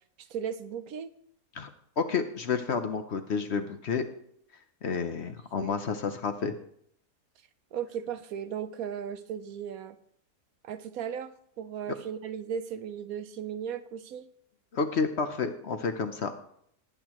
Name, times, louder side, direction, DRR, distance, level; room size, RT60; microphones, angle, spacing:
voice 1, 0.2-1.1 5.3-5.4 5.6-5.8 7.7-10.0 10.6-14.3, right 8 dB, 70° right, 11 dB, 1.1 m, -36 dB
voice 2, 2.0-4.0 4.8-6.5 14.7-16.3, left 5 dB, 55° left, 8 dB, 0.9 m, -30 dB
18.5 x 8.2 x 3.0 m, 0.68 s
omnidirectional pair, 1.6 m